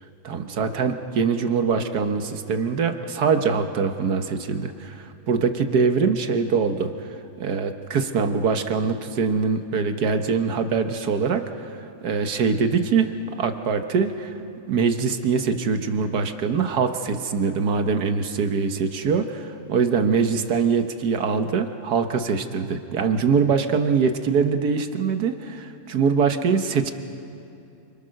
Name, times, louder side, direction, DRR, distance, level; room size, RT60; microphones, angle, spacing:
voice 1, 0.2-7.1 7.4-11.8 12.0-14.4 14.7-26.9, right 5 dB, 90° right, 7 dB, 1.7 m, -23 dB
28.5 x 26.0 x 6.5 m, 2.7 s
omnidirectional pair, 1.6 m